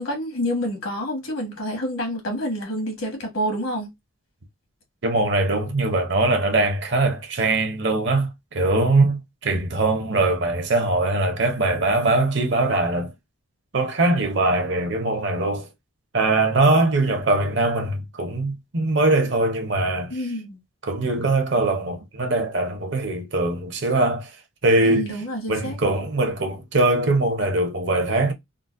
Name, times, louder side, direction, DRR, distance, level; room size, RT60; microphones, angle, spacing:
voice 1, 0.0-3.9 20.1-20.6 24.9-25.8, equal, 75° left, 1.4 m, -28 dB
voice 2, 5.0-13.1 13.7-15.7 16.1-20.2 20.8-24.3 24.6-25.2 25.5-28.3, right 2 dB, 55° right, 0.7 m, -22 dB
3.8 x 2.1 x 2.5 m
head